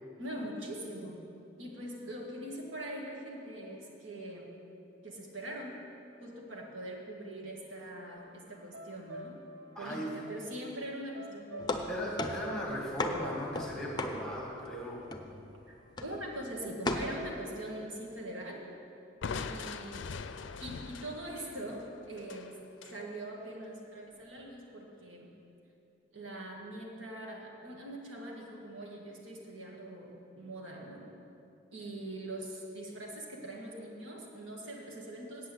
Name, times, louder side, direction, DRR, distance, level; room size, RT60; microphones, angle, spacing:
voice 1, 0.2-1.2 1.6-4.5 5.0-5.8 6.2-9.4 9.8-11.8 15.7-18.6 19.2-20.1 20.6-22.6 22.8-25.3 26.1-31.1 31.7-35.5, right 1 dB, 85° right, -1 dB, 1.9 m, -42 dB
sound 1, 7.9-16.2, equal, 65° right, 0.6 m, -51 dB
voice 2, 9.7-10.1 11.9-15.1, equal, 5° left, -3 dB, 1.6 m, -37 dB
sound 2, 11.6-14.8 15.1-15.6 16.0-16.3 16.8-17.1, left 2 dB, 20° left, 0.6 m, -35 dB
Crushing, 19.2-23.0, left 5 dB, 70° left, 0.4 m, -42 dB
8.0 x 8.0 x 8.4 m, 2.7 s
head